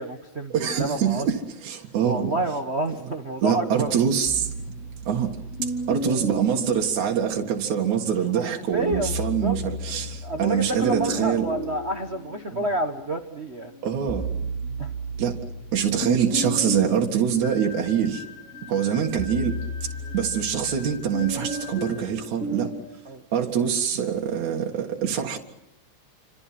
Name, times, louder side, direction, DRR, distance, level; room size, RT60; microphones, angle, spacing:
voice 1, 0.0-1.3 2.0-3.9 8.3-9.6 10.2-13.7 14.8-14.9 23.0-23.2 23.6-23.7, right 2 dB, 55° right, 0.7 m, -29 dB
voice 2, 0.5-1.3 1.6-2.3 3.4-4.5 5.0-5.3 5.6-11.4 13.8-14.3 15.2-15.3 15.7-18.2 18.7-19.5 20.1-22.7 23.3-25.4, right 8 dB, 75° right, 3.2 m, -24 dB
sound 1, 4.2-7.7 8.7-13.1 13.6-22.9, right 1 dB, 20° left, 4.7 m, -34 dB
sound 2, 17.4-22.3, left 6 dB, 75° left, 3.5 m, -43 dB
29.0 x 26.0 x 6.0 m
omnidirectional pair, 3.3 m